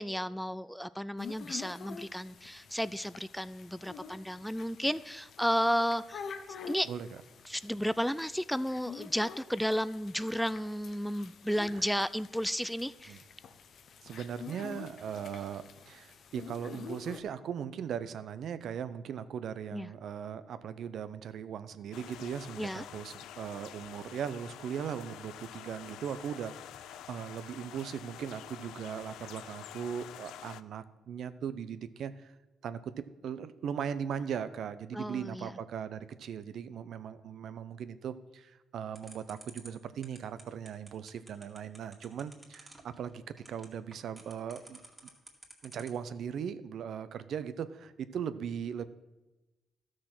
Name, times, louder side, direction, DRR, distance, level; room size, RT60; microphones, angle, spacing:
voice 1, 0.0-6.4 6.7-6.9 7.5-13.2 19.7-19.9 22.6-22.9 34.9-35.6, equal, ahead, 16 dB, 0.3 m, -33 dB
sound 1, 1.2-17.2, left 6 dB, 60° left, 0.8 m, -48 dB
voice 2, 14.0-32.3 32.6-43.2 43.5-44.8 45.6-48.8, right 8 dB, 70° right, 13 dB, 0.6 m, -39 dB
sound 2, 21.9-30.6, left 11 dB, 85° left, 0.4 m, -48 dB
sound 3, 38.9-46.1, right 2 dB, 20° right, 2.1 m, -51 dB
12.5 x 6.3 x 6.0 m, 1.1 s
cardioid pair, 90°, 0 cm